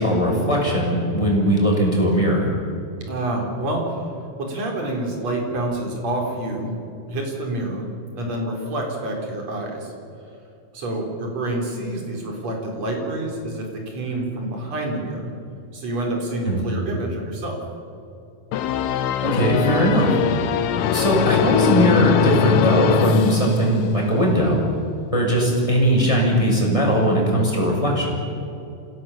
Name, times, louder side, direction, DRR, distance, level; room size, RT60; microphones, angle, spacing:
voice 1, 0.0-2.5 16.4-16.7 19.2-20.1 20.9-24.6 25.1-28.2, equal, 10° left, -2 dB, 5.9 m, -19 dB
voice 2, 3.1-4.1 4.4-6.8 7.1-7.9 8.2-9.9 10.7-15.3 15.7-17.6, right 1 dB, 45° right, 1 dB, 5.1 m, -27 dB
sound 1, 18.5-24.2, left 8 dB, 85° left, 3.0 m, -21 dB
27.5 x 17.5 x 7.5 m, 2.7 s
omnidirectional pair, 4.4 m